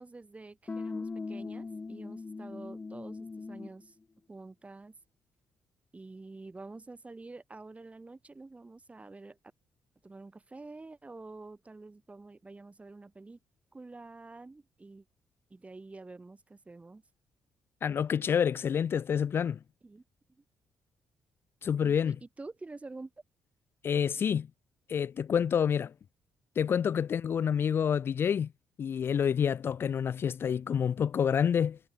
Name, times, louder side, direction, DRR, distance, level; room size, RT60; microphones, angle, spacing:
voice 1, 0.0-4.0 4.3-5.0 5.9-9.4 10.0-13.4 13.7-15.1 15.5-17.0 19.8-20.0 20.4-20.5 21.7-23.1, right 3 dB, 25° right, 4.2 m, -48 dB
sound 1, 0.7-3.8, left 4 dB, 30° left, 1.3 m, -39 dB
voice 2, 17.8-19.6 21.6-22.2 23.8-24.5 24.9-25.9 26.6-28.5 28.8-31.8, left 8 dB, 50° left, 0.3 m, -28 dB
hypercardioid pair, 45°, 5 cm